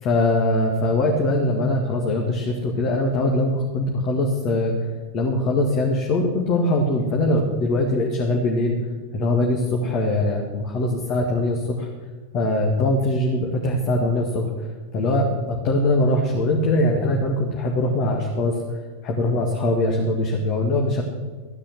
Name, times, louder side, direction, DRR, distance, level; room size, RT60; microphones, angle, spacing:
voice 1, 0.0-4.9 5.1-8.7 9.1-11.9 12.3-14.7 14.9-21.0, left 1 dB, 40° left, 0 dB, 1.9 m, -22 dB
15.0 x 9.7 x 6.1 m, 1.4 s
figure-of-eight pair, 90°, 0 cm